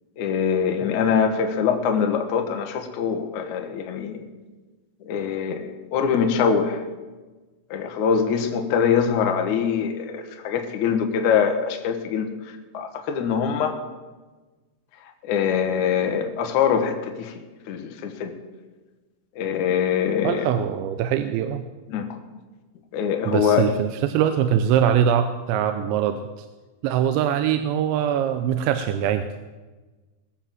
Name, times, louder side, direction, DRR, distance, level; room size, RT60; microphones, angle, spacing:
voice 1, 0.2-4.2 5.0-6.8 7.7-12.3 12.7-13.8 15.2-17.3 17.7-18.3 19.4-20.5 21.9-22.2 22.9-23.7, left 7 dB, 75° left, 5 dB, 1.8 m, -23 dB
voice 2, 20.2-21.7 23.3-26.2 26.8-29.3, right 9 dB, 85° right, 9 dB, 2.9 m, -22 dB
20.5 x 7.6 x 7.5 m, 1.3 s
omnidirectional pair, 5.4 m